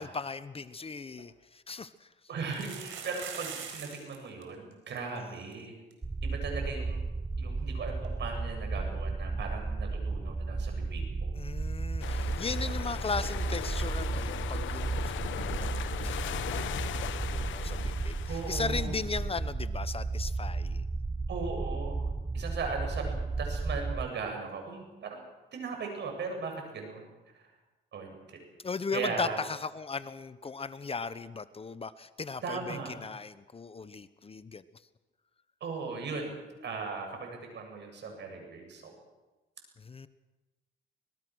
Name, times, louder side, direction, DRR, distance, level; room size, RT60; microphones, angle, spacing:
voice 1, 0.0-2.1 11.3-20.8 28.6-34.6 39.8-40.1, left 4 dB, 30° left, 14 dB, 0.9 m, -37 dB
sound 1, 0.8-0.9 1.2-1.3 2.4-4.2 4.4-4.5 4.7-5.0 5.5-5.6 5.9-6.0 8.0-8.1, right 7 dB, 90° right, 4.6 m, -42 dB
voice 2, 2.3-5.8 6.2-7.0 7.4-11.4 12.6-12.7 18.3-19.0 21.3-22.1 22.3-25.2 25.5-27.1 27.3-27.5 27.9-28.4 28.9-29.4 32.4-33.0 35.6-38.9, right 4 dB, 60° right, 3 dB, 7.3 m, -38 dB
sound 2, 6.0-24.1, right 3 dB, 15° right, 0.7 m, -34 dB
sound 3, 12.0-20.2, left 11 dB, 75° left, 1.1 m, -39 dB
25.5 x 19.5 x 6.3 m, 1.2 s
cardioid pair, 90°, 20 cm